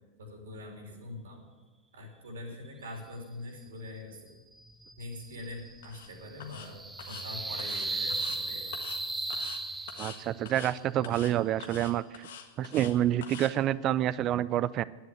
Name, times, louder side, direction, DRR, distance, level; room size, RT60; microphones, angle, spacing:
voice 1, 0.3-1.4 1.9-4.2 5.0-8.7 9.2-9.3, left 2 dB, 65° right, 2 dB, 3.1 m, -43 dB
sound 1, 4.5-10.5, right 2 dB, 10° right, 0.8 m, -37 dB
sound 2, 5.8-6.1 6.4-6.7 7.0-7.2 7.6-8.4 8.7-9.0 9.3-9.6 9.9-10.2 10.4-10.7 11.0-11.3 11.6-12.9 13.2-13.5, left 8 dB, 60° left, 1.5 m, -45 dB
voice 2, 10.0-12.3 12.6-14.8, right 12 dB, 35° right, 20 dB, 0.4 m, -28 dB
10.5 x 9.5 x 8.9 m, 1.3 s
figure-of-eight pair, 90°, 0 cm